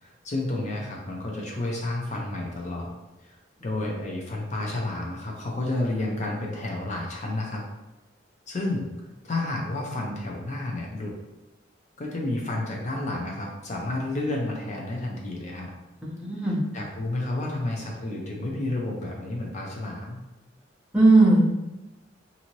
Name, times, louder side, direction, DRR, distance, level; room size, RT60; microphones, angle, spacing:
voice 1, 0.0-2.9 3.2-7.6 8.5-8.9 9.2-11.1 12.0-15.7 16.4-20.2, left 2 dB, 40° left, -1 dB, 0.5 m, -31 dB
voice 2, 16.0-16.6 20.9-21.4, right 2 dB, 5° right, -5 dB, 0.6 m, -18 dB
2.7 x 2.7 x 3.0 m, 1.0 s
head